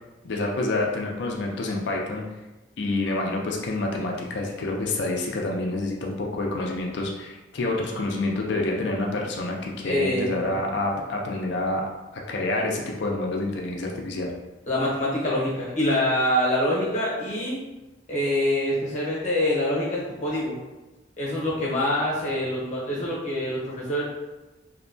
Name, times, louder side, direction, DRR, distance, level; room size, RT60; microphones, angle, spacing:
voice 1, 0.2-2.3 2.8-11.8 12.1-14.3, left 2 dB, 60° left, 0 dB, 0.4 m, -28 dB
voice 2, 9.8-10.5 14.7-17.6 18.1-20.6 21.2-24.0, left 1 dB, 35° left, -6 dB, 0.8 m, -25 dB
2.7 x 2.2 x 2.5 m, 1.1 s
head